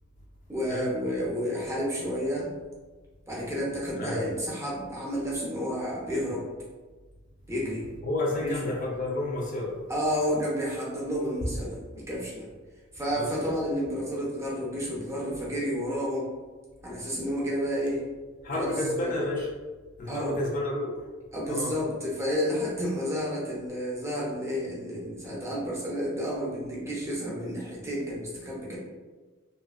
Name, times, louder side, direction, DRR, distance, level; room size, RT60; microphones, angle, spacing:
voice 1, 0.5-2.5 3.3-6.4 7.5-7.9 8.4-8.7 9.9-12.5 12.9-16.3 16.8-18.0 18.5-19.2 20.1-20.4 21.3-28.8, equal, 15° right, -5 dB, 0.6 m, -31 dB
voice 2, 8.0-9.8 13.1-13.5 18.4-19.5 20.0-20.9 21.5-21.7, left 2 dB, 40° left, -2 dB, 0.4 m, -30 dB
2.8 x 2.4 x 2.3 m, 1.3 s
head